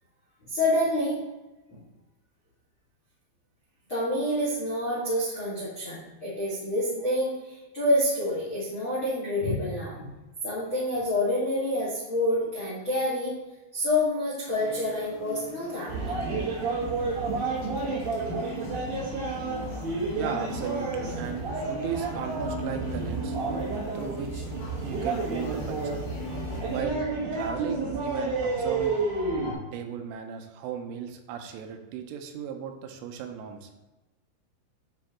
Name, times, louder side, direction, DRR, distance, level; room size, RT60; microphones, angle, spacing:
voice 1, 0.4-1.2 1.7-1.8 3.9-10.1 10.4-13.3 13.7-15.9, left 1 dB, 90° left, -7 dB, 1.1 m, -27 dB
sound 1, 14.5-26.8, left 2 dB, 70° left, 3.9 m, -42 dB
sound 2, 15.9-29.5, right 3 dB, 55° right, 2.4 m, -30 dB
voice 2, 20.1-23.4 23.9-24.4 24.8-26.0 26.7-27.0 27.3-29.0 29.7-33.7, right 8 dB, 85° right, 5 dB, 3.2 m, -36 dB
9.5 x 5.2 x 3.0 m, 1.1 s
omnidirectional pair, 5.7 m